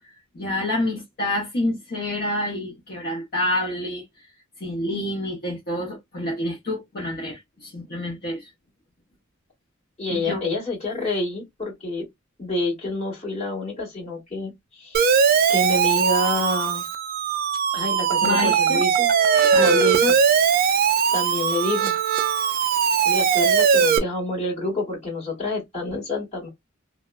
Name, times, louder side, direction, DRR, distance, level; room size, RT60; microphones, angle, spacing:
voice 1, 0.0-4.0 4.6-8.5 10.1-10.4 18.2-18.8 19.5-20.1, left 1 dB, 50° left, 0.8 m, -28 dB
voice 2, 10.0-12.1 12.4-14.5 14.8-15.0 15.5-16.8 17.7-19.1 19.6-20.2 21.1-21.9 23.0-26.5, left 1 dB, 30° left, 1.6 m, -27 dB
Siren, 14.9-24.0, right 7 dB, 45° right, 0.3 m, -20 dB
2.7 x 2.0 x 2.2 m
head